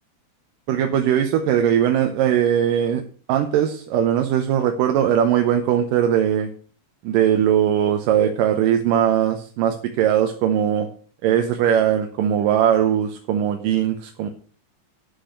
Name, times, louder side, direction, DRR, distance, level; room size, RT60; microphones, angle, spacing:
voice 1, 0.7-3.0 3.3-6.5 7.0-10.9 11.2-14.3, right 9 dB, 85° right, 5 dB, 2.6 m, -20 dB
9.8 x 6.4 x 6.6 m, 0.43 s
omnidirectional pair, 3.8 m